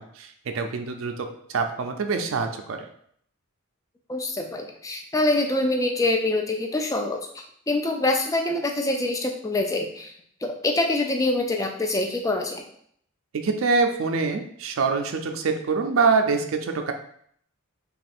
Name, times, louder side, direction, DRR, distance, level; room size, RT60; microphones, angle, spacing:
voice 1, 0.0-2.9 13.3-16.9, right 4 dB, 70° right, 5 dB, 0.4 m, -25 dB
voice 2, 4.1-10.1 10.4-12.6, left 2 dB, 15° left, 3 dB, 0.4 m, -25 dB
3.2 x 2.4 x 4.2 m, 0.65 s
head